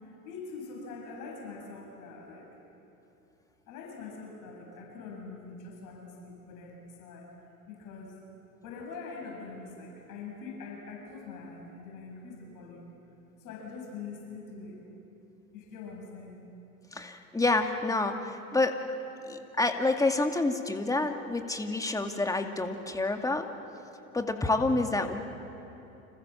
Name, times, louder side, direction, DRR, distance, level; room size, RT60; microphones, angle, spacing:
voice 1, 0.0-2.5 3.7-7.3 7.7-8.1 8.6-12.9 13.4-14.8 15.5-16.4, left 4 dB, 45° left, -1 dB, 7.9 m, -43 dB
voice 2, 16.9-18.8 19.3-23.5 24.1-25.2, left 2 dB, 10° left, 5 dB, 2.2 m, -28 dB
29.5 x 27.0 x 7.4 m, 2.9 s
hypercardioid pair, 85°, 43 cm